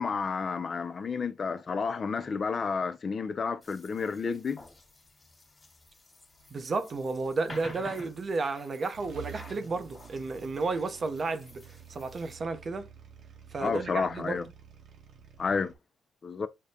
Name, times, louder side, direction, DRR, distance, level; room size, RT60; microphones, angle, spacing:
voice 1, 0.0-4.6 13.6-14.5 15.4-15.7 16.2-16.5, left 5 dB, 40° left, 0.4 m, -31 dB
sound 1, 3.6-12.4, left 2 dB, 25° left, 1.6 m, -50 dB
voice 2, 6.5-11.6 11.9-12.9 13.5-14.4, right 3 dB, 40° right, 0.6 m, -32 dB
sound 2, 8.9-15.7, right 8 dB, 60° right, 0.9 m, -49 dB
6.4 x 2.2 x 2.7 m
cardioid pair, 90°, 0 cm